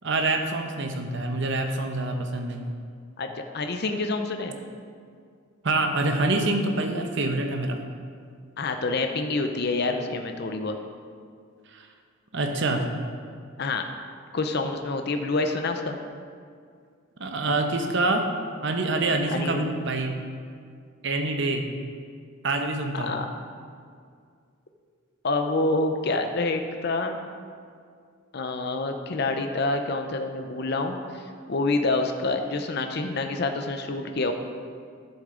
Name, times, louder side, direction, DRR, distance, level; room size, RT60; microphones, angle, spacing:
voice 1, 0.0-2.6 5.6-7.8 11.7-11.9 12.3-12.9 17.2-18.3 18.6-20.2 21.0-21.6 22.4-23.1, right 2 dB, 60° right, 4 dB, 0.9 m, -26 dB
voice 2, 3.2-4.6 8.6-10.8 13.6-13.8 14.3-16.0 19.3-19.8 22.9-23.3 25.2-27.2 28.3-34.3, left 3 dB, 50° left, 6 dB, 0.6 m, -27 dB
11.0 x 7.1 x 3.8 m, 2.2 s
head